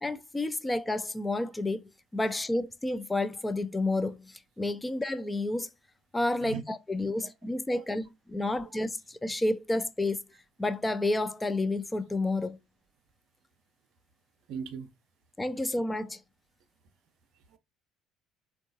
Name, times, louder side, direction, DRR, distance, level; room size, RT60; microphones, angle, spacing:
voice 1, 0.0-1.8 2.1-5.7 6.1-10.2 10.6-12.6 15.4-16.2, left 2 dB, 15° left, 0.4 m, -30 dB
voice 2, 14.5-14.9 15.6-15.7 17.5-17.6, right 7 dB, 65° right, 0.5 m, -39 dB
3.7 x 2.3 x 2.5 m
hypercardioid pair, 60°, 0 cm